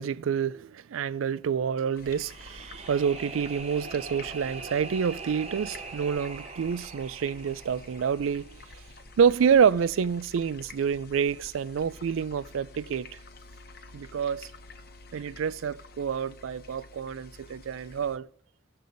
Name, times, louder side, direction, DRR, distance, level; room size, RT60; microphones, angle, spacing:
voice 1, 0.0-8.5 9.2-13.1 13.9-14.5 15.1-18.3, right 7 dB, 90° right, 0.4 m, -27 dB
sound 1, 1.9-18.2, left 3 dB, 50° left, 0.9 m, -49 dB
sound 2, 2.0-9.1, right 4 dB, 30° right, 0.6 m, -42 dB
17.0 x 6.7 x 3.9 m
head